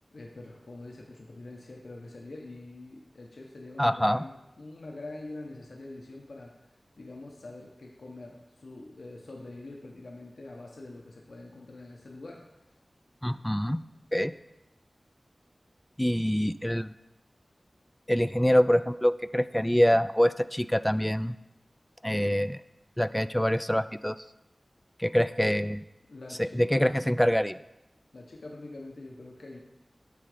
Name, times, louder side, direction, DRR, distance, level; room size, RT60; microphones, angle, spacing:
voice 1, 0.1-6.5 7.0-12.5 26.1-27.0 28.1-29.6, left 2 dB, 80° left, -1 dB, 1.0 m, -44 dB
voice 2, 3.8-4.2 13.2-13.8 14.1-14.3 16.0-16.9 18.1-21.4 22.0-22.6 23.0-24.2 25.0-25.8 26.4-27.6, equal, 10° left, 14 dB, 0.3 m, -25 dB
9.6 x 3.9 x 5.0 m, 0.93 s
wide cardioid pair, 45°, 0 cm